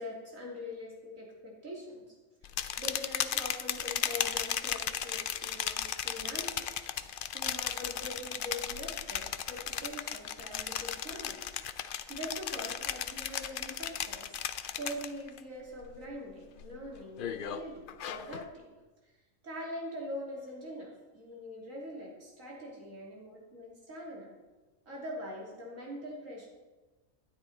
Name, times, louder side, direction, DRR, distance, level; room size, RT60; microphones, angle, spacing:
voice 1, 0.0-2.2 2.4-6.7 7.3-11.4 11.8-14.4 14.8-18.7 19.4-24.3 24.9-26.5, left 1 dB, 70° right, -3 dB, 3.4 m, -43 dB
sound 1, 2.4-15.4 15.8-16.2 16.6-18.5, left 9 dB, 60° left, 0.5 m, -36 dB
12.5 x 10.5 x 4.2 m, 1.2 s
omnidirectional pair, 1.4 m